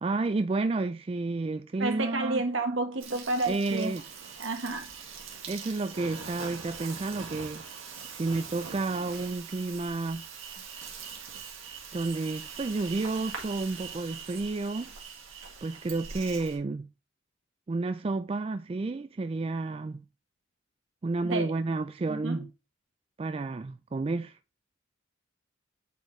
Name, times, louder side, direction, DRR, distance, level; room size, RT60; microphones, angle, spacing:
voice 1, 0.0-2.4 3.5-4.0 5.5-7.6 8.1-10.2 11.9-14.9 15.6-16.9 17.7-20.0 21.0-22.5 23.2-24.4, right 3 dB, 30° right, 0.3 m, -31 dB
voice 2, 1.8-3.9 4.4-4.9 21.2-21.5 22.0-22.4, right 2 dB, 75° right, 1.3 m, -30 dB
Insect, 3.0-16.6, right 6 dB, 90° right, 1.8 m, -42 dB
8.1 x 4.3 x 3.2 m
head